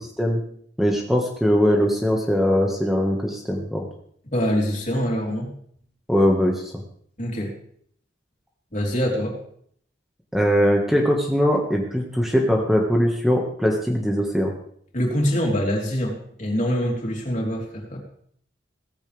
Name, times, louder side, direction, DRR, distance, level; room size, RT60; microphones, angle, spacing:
voice 1, 0.8-3.9 6.1-6.7 10.3-14.5, equal, ahead, 0 dB, 1.7 m, -21 dB
voice 2, 4.3-5.5 7.2-7.5 8.7-9.4 14.9-18.0, equal, 40° left, -1 dB, 3.8 m, -24 dB
17.5 x 15.0 x 3.5 m, 0.65 s
head